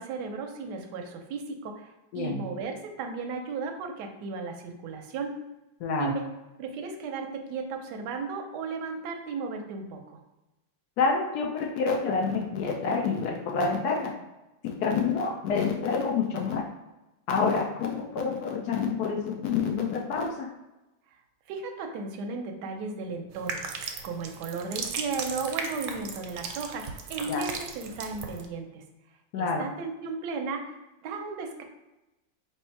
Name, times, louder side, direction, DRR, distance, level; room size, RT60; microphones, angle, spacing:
voice 1, 0.0-5.3 6.0-6.2 6.6-10.2 21.5-28.8 29.4-31.6, right 4 dB, 70° right, 4 dB, 1.1 m, -35 dB
voice 2, 2.1-2.4 5.8-6.1 11.0-14.1 14.6-16.6 17.3-20.5 27.3-27.4 29.3-29.6, left 5 dB, 80° left, 2 dB, 0.8 m, -28 dB
sound 1, 23.3-28.5, right 5 dB, 85° right, 1.4 m, -37 dB
3.4 x 3.0 x 4.4 m, 1.0 s
omnidirectional pair, 2.2 m